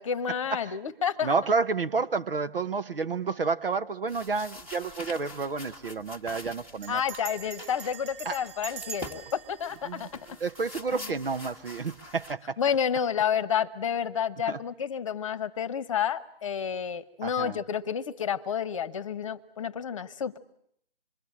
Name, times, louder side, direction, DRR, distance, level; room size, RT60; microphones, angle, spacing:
voice 1, 0.0-1.3 6.9-10.4 10.9-11.1 12.6-20.4, left 8 dB, 30° left, 1.1 m, -30 dB
voice 2, 1.2-7.0 8.2-8.4 9.9-10.0 10.4-12.6 14.5-14.6 17.2-17.6, right 4 dB, 65° right, 1.1 m, -30 dB
sound 1, 4.1-12.3, left 1 dB, 5° right, 1.3 m, -45 dB
Bell, 4.7-5.1 5.3-5.4 5.6-6.0 6.8-10.9, right 8 dB, 30° right, 1.1 m, -44 dB
26.5 x 22.0 x 8.7 m
figure-of-eight pair, 145°, 31 cm